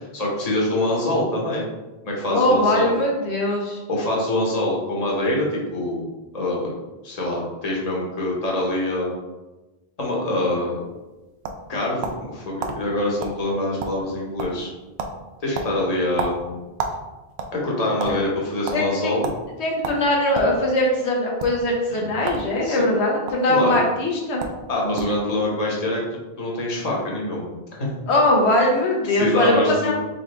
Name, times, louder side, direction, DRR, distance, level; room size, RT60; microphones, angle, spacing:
voice 1, 0.0-1.7 2.0-2.9 3.9-6.1 6.3-6.7 7.0-9.2 10.0-10.8 11.7-14.7 15.4-16.6 17.5-19.3 21.9-22.1 22.6-22.8 23.5-23.8 24.7-26.0 26.4-27.5 27.8-27.9 29.1-29.9, left 1 dB, 40° left, -4 dB, 1.1 m, -25 dB
voice 2, 2.3-3.8 18.7-19.1 19.6-24.4 28.1-29.9, left 1 dB, 85° left, -1 dB, 1.2 m, -21 dB
sound 1, 10.9-12.3 12.6-12.8 13.2-13.4 13.7-14.1 14.4-14.7 15.0-15.2 15.5-17.0 17.3-18.1 18.7-18.8 19.2-19.4 19.8-20.5 21.3-21.5 22.2-22.5 22.8-23.3 24.1-24.2 24.4-24.6 25.0-25.2, right 4 dB, 80° right, 0.9 m, -30 dB
4.1 x 3.7 x 3.3 m, 1.1 s
omnidirectional pair, 1.1 m